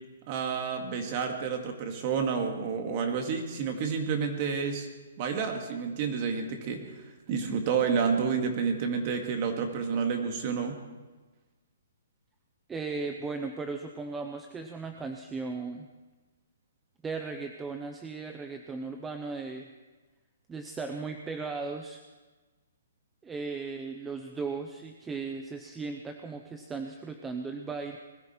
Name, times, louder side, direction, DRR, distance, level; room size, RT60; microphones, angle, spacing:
voice 1, 0.3-4.9 5.2-6.9 7.3-10.8, right 6 dB, 30° right, 4 dB, 1.9 m, -29 dB
voice 2, 12.7-15.9 17.0-19.7 20.5-22.0 23.2-28.0, right 4 dB, 10° right, 5 dB, 0.6 m, -37 dB
20.5 x 13.5 x 4.4 m, 1.2 s
hypercardioid pair, 165°, 0 cm